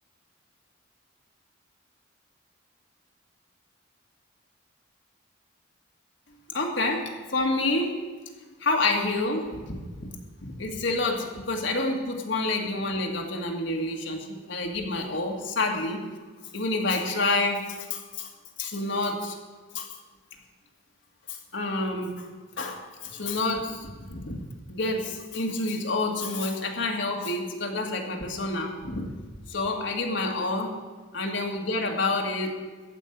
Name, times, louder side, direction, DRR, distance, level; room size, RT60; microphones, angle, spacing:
voice 1, 6.5-7.9 8.6-10.1 10.4-16.0 16.5-18.3 18.6-19.4 19.8-19.9 21.3-22.3 22.6-24.4 24.7-29.1 29.5-30.7 31.1-32.6, left 2 dB, 65° left, 1 dB, 1.9 m, -28 dB
14.5 x 5.5 x 9.7 m, 1.4 s
head